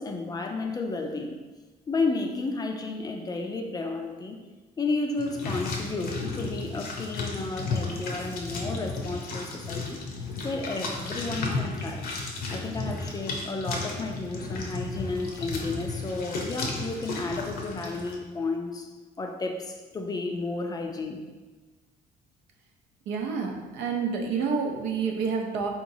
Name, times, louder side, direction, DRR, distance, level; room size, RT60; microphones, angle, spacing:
voice 1, 0.0-1.3 1.9-4.4 4.8-10.0 10.4-12.1 12.5-18.9 19.2-21.3, left 3 dB, 25° left, 3 dB, 0.4 m, -32 dB
sound 1, 5.2-18.2, left 3 dB, 65° left, 0.7 m, -34 dB
voice 2, 23.1-25.7, right 5 dB, 85° right, 2 dB, 0.6 m, -28 dB
3.8 x 2.9 x 2.6 m, 1.3 s
cardioid pair, 110°, 17 cm